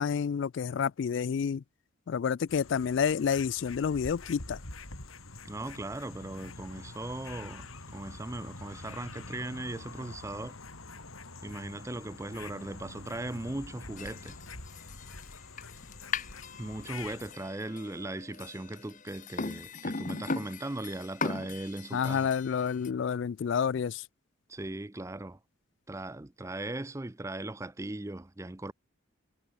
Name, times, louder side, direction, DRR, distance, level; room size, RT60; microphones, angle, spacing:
voice 1, 0.0-1.6 2.1-4.6 21.9-24.0, left 7 dB, 60° left, 0.3 m, -29 dB
sound 1, 2.5-17.3, left 3 dB, 85° left, 5.6 m, -46 dB
voice 2, 5.4-10.6 11.4-14.4 16.6-22.3 24.5-25.4 25.9-28.7, right 2 dB, 15° right, 0.5 m, -38 dB
sound 2, 14.0-22.9, left 4 dB, 35° left, 0.9 m, -39 dB
head